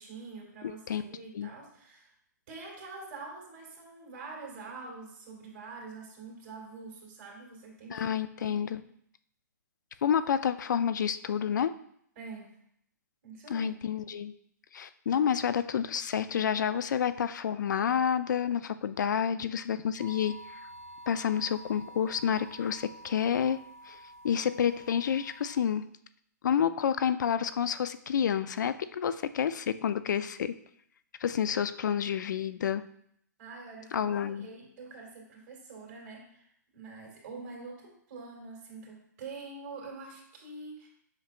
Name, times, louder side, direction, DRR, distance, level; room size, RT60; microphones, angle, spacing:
voice 1, 0.0-2.1 2.5-8.8 12.2-12.5 13.2-13.7 33.4-36.5 36.7-40.9, right 4 dB, 40° right, -2 dB, 2.4 m, -45 dB
voice 2, 0.6-1.0 1.3-1.5 7.9-8.8 10.0-11.7 13.5-14.3 14.7-20.6 21.1-23.6 23.9-24.0 24.2-25.9 26.4-30.5 31.2-32.8 33.9-34.5, left 8 dB, 75° left, 13 dB, 0.4 m, -29 dB
sound 1, 20.0-25.6, right 1 dB, 60° right, 2.1 m, -49 dB
7.6 x 5.8 x 2.5 m, 0.69 s
hypercardioid pair, 155°, 10 cm